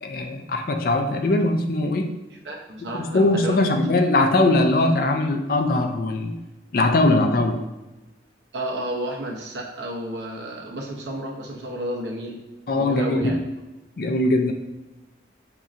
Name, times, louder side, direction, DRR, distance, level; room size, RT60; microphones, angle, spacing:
voice 1, 0.0-2.1 3.0-6.3 6.7-7.6 12.7-13.4 14.0-14.5, left 2 dB, 50° left, 5 dB, 0.4 m, -21 dB
voice 2, 2.4-3.7 8.5-12.4 12.7-13.4, right 1 dB, 75° right, 0 dB, 0.8 m, -31 dB
5.2 x 2.8 x 2.4 m, 1.1 s
head